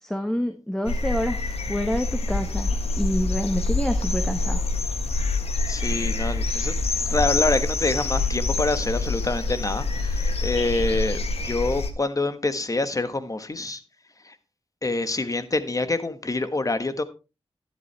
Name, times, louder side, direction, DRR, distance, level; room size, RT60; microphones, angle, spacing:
voice 1, 0.0-4.7, equal, 5° left, 1.4 m, -28 dB
sound 1, 0.9-11.9, left 3 dB, 75° left, 1.5 m, -26 dB
voice 2, 5.7-6.7 7.1-13.8 14.2-14.3 14.8-17.0, left 2 dB, 35° left, 1.3 m, -26 dB
12.0 x 11.0 x 3.4 m
cardioid pair, 60°, 11 cm